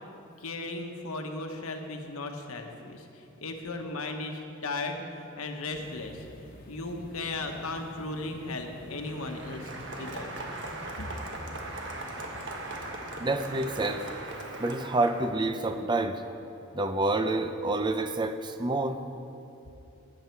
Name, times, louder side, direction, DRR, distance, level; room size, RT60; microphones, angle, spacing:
voice 1, 0.4-6.2 6.7-9.7 10.0-10.3 11.0-11.1, left 2 dB, 90° left, 4 dB, 1.2 m, -36 dB
sound 1, 5.7-14.2, equal, 40° left, 1.1 m, -48 dB
Applause, 8.8-15.7, right 2 dB, 60° right, 1.4 m, -40 dB
voice 2, 13.2-14.1 14.6-16.2 16.7-19.0, right 2 dB, 20° right, 8 dB, 0.5 m, -28 dB
14.0 x 9.6 x 4.6 m, 2.8 s
head